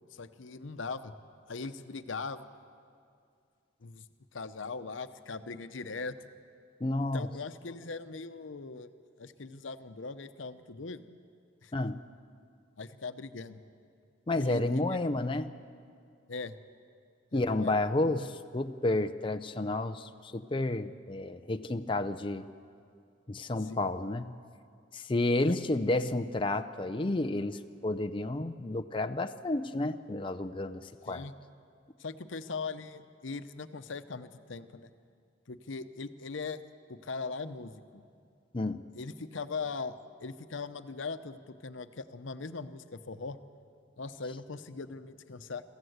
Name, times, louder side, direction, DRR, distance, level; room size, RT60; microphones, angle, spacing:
voice 1, 0.1-1.1 1.5-2.5 3.8-4.0 4.3-6.2 7.0-8.9 9.2-11.0 11.6-11.7 12.8-13.6 14.4-15.0 16.3-16.5 17.3-17.8 23.6-23.9 25.4-25.5 31.1-31.3 32.0-34.9 35.5-36.6 36.9-38.0 38.9-39.9 40.2-43.4 44.0-45.6, left 4 dB, 85° left, 11 dB, 0.8 m, -40 dB
voice 2, 6.8-7.3 11.7-12.0 14.3-15.5 17.3-22.4 23.3-24.3 24.9-31.3 38.5-38.8, left 2 dB, 25° left, 7 dB, 0.5 m, -31 dB
23.5 x 15.0 x 8.0 m, 2.3 s
head